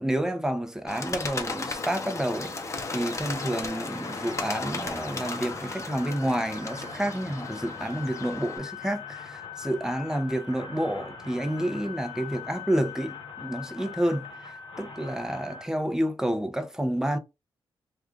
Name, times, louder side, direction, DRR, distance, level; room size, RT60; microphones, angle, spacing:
voice 1, 0.0-2.5 2.9-17.2, right 1 dB, 5° right, 0.8 m, -29 dB
Bird, 0.9-8.6, left 3 dB, 35° left, 0.8 m, -35 dB
sound 1, 2.0-15.7, left 5 dB, 70° left, 0.9 m, -42 dB
3.1 x 2.4 x 3.8 m
cardioid pair, 75°, 9 cm